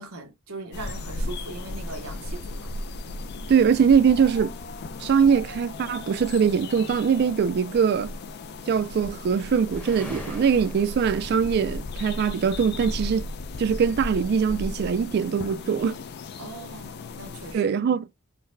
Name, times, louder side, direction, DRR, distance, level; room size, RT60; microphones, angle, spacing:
voice 1, 0.0-2.7 3.3-3.4 16.4-17.7, right 2 dB, 90° right, 0.9 m, -40 dB
sound 1, 0.7-17.6, left 2 dB, 50° left, 0.4 m, -36 dB
voice 2, 3.5-4.5 5.0-8.1 8.7-13.2 13.6-16.0 17.5-18.1, right 6 dB, 50° right, 0.3 m, -22 dB
sound 2, 9.5-11.3, left 1 dB, 10° left, 0.8 m, -42 dB
3.8 x 2.1 x 2.6 m
head